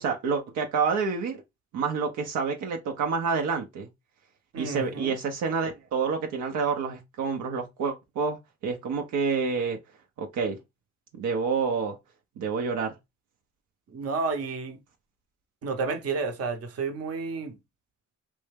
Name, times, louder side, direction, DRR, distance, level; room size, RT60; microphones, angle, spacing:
voice 1, 0.0-1.4 1.7-3.9 4.6-9.8 10.2-10.6 11.1-12.0 12.4-12.9, right 5 dB, 80° right, 0.7 m, -28 dB
voice 2, 4.5-5.2 13.9-14.8 15.6-17.5, right 4 dB, 55° right, 0.9 m, -31 dB
3.2 x 2.7 x 3.4 m
cardioid pair, 90°, 30 cm